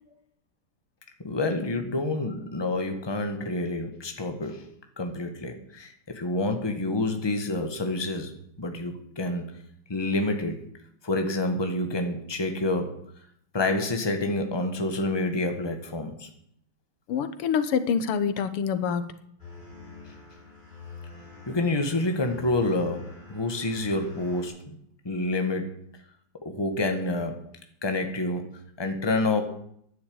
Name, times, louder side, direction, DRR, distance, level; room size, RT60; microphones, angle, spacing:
voice 1, 1.2-4.7 5.0-8.3 8.6-9.5 9.9-10.7 11.0-13.0 13.5-16.3 21.5-24.8 25.0-25.8 26.4-27.4 27.8-29.4, left 2 dB, 15° left, 5 dB, 1.4 m, -28 dB
voice 2, 17.1-19.1, left 7 dB, 90° left, 12 dB, 2.0 m, -26 dB
sound 1, 19.4-24.5, left 4 dB, 20° right, 4.3 m, -45 dB
11.5 x 9.8 x 8.8 m, 0.70 s
omnidirectional pair, 2.4 m